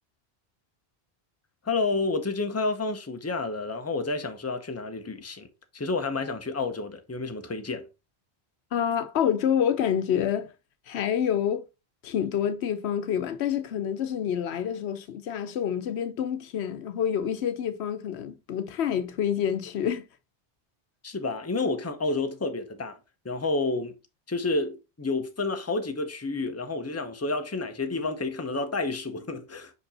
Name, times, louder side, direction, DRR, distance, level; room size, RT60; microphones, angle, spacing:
voice 1, 1.6-5.5 5.7-7.8 21.0-23.0 23.2-23.9 24.3-29.7, left 3 dB, 15° left, 0.7 m, -30 dB
voice 2, 8.7-10.5 10.9-11.6 12.0-20.1, left 9 dB, 90° left, 1.0 m, -27 dB
5.3 x 5.2 x 4.1 m
omnidirectional pair, 1.1 m